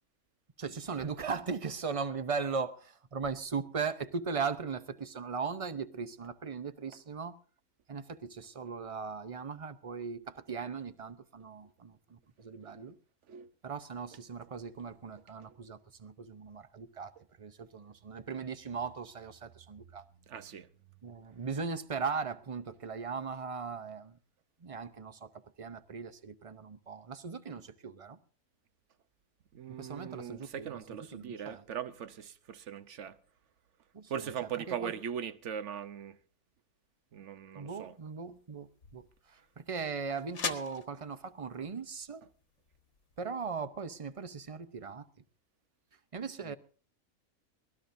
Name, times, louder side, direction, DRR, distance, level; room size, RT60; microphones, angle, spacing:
voice 1, 0.6-7.4 7.9-12.9 13.6-17.1 17.4-20.0 21.0-24.2 24.6-28.2 29.7-31.6 33.9-34.9 37.5-42.2 43.2-45.1 46.1-46.5, right 5 dB, 30° right, 0.7 m, -38 dB
voice 2, 20.3-20.7 29.5-33.2 34.1-36.2 37.1-37.9 46.4-46.6, right 8 dB, 60° right, 1.1 m, -40 dB
sound 1, 37.7-43.6, left 5 dB, 55° left, 1.6 m, -44 dB
23.0 x 18.0 x 2.7 m
omnidirectional pair, 1.5 m